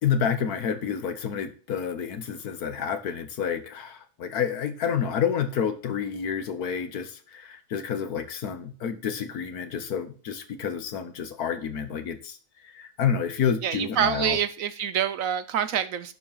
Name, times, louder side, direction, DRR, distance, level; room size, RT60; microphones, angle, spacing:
voice 1, 0.0-12.4 12.6-14.4, left 7 dB, 70° left, 1.6 m, -29 dB
voice 2, 13.6-16.1, right 9 dB, 65° right, 0.9 m, -26 dB
11.5 x 4.6 x 5.5 m
omnidirectional pair, 1.7 m